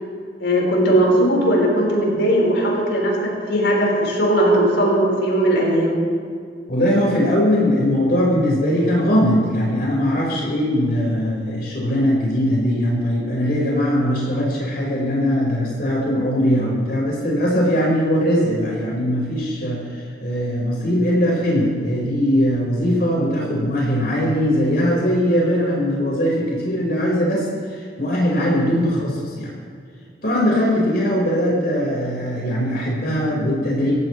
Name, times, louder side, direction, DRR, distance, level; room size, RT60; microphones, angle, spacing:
voice 1, 0.4-5.9, right 1 dB, 85° left, -3 dB, 5.0 m, -18 dB
voice 2, 6.7-29.5 30.2-33.9, equal, 55° left, -5 dB, 5.2 m, -20 dB
25.5 x 16.5 x 3.3 m, 2.2 s
head